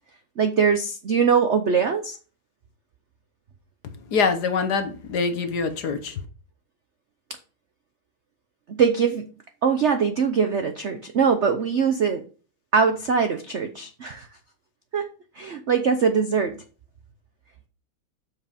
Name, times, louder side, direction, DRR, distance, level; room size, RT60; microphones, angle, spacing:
voice 1, 0.4-2.2 8.8-9.3 9.6-12.2 12.7-14.3 14.9-15.1 15.4-16.6, right 6 dB, 75° right, 0.6 m, -22 dB
voice 2, 3.8-6.2, left 5 dB, 60° left, 1.3 m, -25 dB
7.6 x 6.3 x 5.0 m
omnidirectional pair, 2.3 m